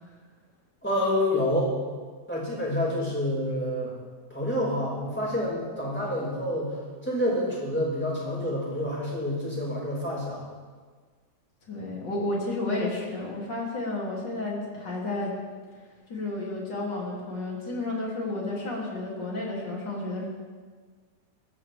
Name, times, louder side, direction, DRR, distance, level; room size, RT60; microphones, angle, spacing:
voice 1, 0.8-1.7 2.3-3.9 4.3-10.4, left 1 dB, 5° left, -6 dB, 5.9 m, -28 dB
voice 2, 11.7-15.3 16.1-20.3, left 2 dB, 90° left, -4 dB, 3.9 m, -31 dB
24.5 x 14.0 x 3.6 m, 1.5 s
omnidirectional pair, 1.8 m